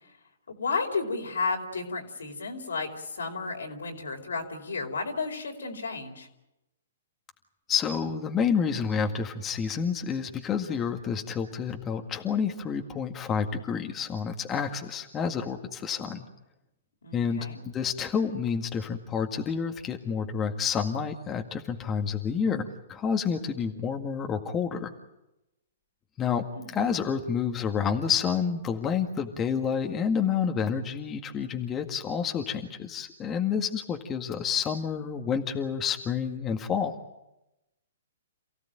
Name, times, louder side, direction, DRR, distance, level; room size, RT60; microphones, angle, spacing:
voice 1, 0.5-6.3 17.0-17.6 26.5-26.8, left 4 dB, 80° left, 3 dB, 4.6 m, -33 dB
voice 2, 7.7-16.2 17.1-24.9 26.2-26.4 26.7-36.9, left 6 dB, 20° left, 3 dB, 1.9 m, -29 dB
28.0 x 16.5 x 9.1 m, 0.93 s
hypercardioid pair, 125°, 0 cm